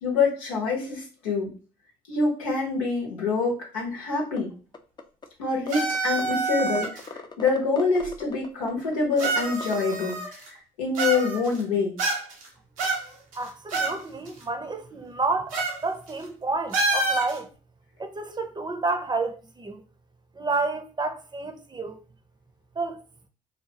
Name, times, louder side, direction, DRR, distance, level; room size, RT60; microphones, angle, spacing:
voice 1, 0.0-1.5 2.1-4.5 5.4-12.0, left 4 dB, 85° left, 0.9 m, -26 dB
sound 1, 4.4-4.5 4.7-5.2 5.7-5.8 5.9-6.3 6.6-10.2, left 4 dB, 25° left, 0.5 m, -39 dB
sound 2, 5.7-7.1 8.0-8.1 9.2-10.5 10.9-11.6 12.0-12.5 12.8-14.0 14.3-14.4 15.5-15.8 16.1-16.2 16.7-17.4, right 3 dB, 90° right, 0.7 m, -27 dB
voice 2, 13.3-17.5 18.0-19.8 20.3-22.0 22.7-23.0, right 3 dB, 25° right, 0.6 m, -30 dB
2.8 x 2.3 x 2.8 m
hypercardioid pair, 50°, 17 cm